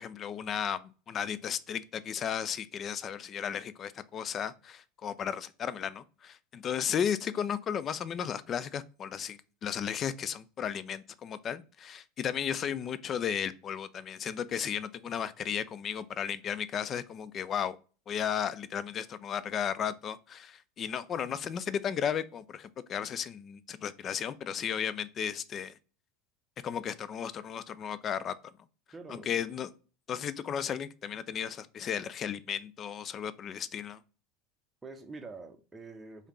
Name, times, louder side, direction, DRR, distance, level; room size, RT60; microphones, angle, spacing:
voice 1, 0.0-17.8 18.1-25.7 26.6-28.3 29.1-29.7 30.1-34.0, left 8 dB, 35° left, 0.3 m, -34 dB
voice 2, 28.9-29.5 34.8-36.3, right 3 dB, 15° right, 0.6 m, -46 dB
4.9 x 2.7 x 3.1 m
figure-of-eight pair, 75°, 0 cm